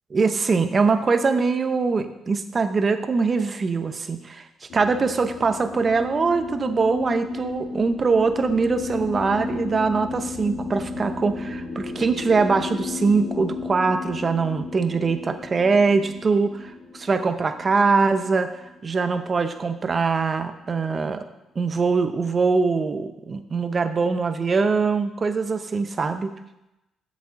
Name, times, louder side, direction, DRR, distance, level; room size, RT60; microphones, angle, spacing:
voice 1, 0.1-4.5 4.7-18.5 18.8-21.2 21.6-26.3, right 4 dB, 35° right, 9 dB, 0.8 m, -22 dB
sound 1, 4.7-19.3, left 4 dB, 70° left, 2.0 m, -34 dB
7.5 x 7.4 x 5.8 m, 0.93 s
cardioid pair, 90°, 0 cm